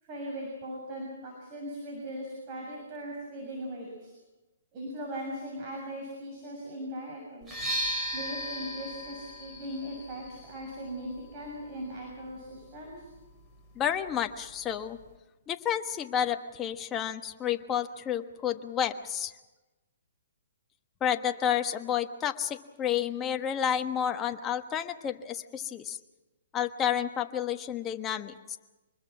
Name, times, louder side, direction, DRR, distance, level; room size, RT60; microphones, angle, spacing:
voice 1, 0.0-4.1 4.7-7.6 8.1-13.0, equal, 35° right, -1 dB, 6.9 m, -39 dB
sound 1, 7.4-15.2, right 1 dB, 15° right, 5.3 m, -39 dB
voice 2, 13.7-15.0 15.5-19.3 21.0-26.0 26.5-28.6, left 9 dB, 20° left, 7 dB, 1.3 m, -30 dB
25.5 x 21.5 x 6.1 m, 1.1 s
hypercardioid pair, 135°, 0 cm